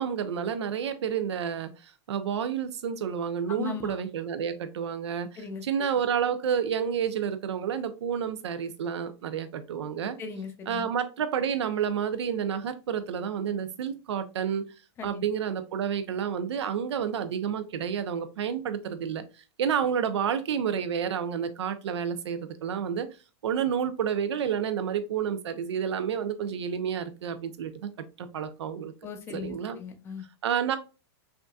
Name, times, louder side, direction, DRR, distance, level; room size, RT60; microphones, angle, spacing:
voice 1, 0.0-10.2 10.7-14.6 15.0-19.2 19.6-23.1 23.4-27.9 28.2-28.9 29.3-29.8 30.4-30.8, right 8 dB, 85° right, 0.8 m, -30 dB
voice 2, 3.5-4.0 5.4-5.6 10.2-10.9 15.0-15.1 29.0-30.3, left 6 dB, 15° left, 0.5 m, -38 dB
5.9 x 2.7 x 2.3 m
supercardioid pair, 160°, 14 cm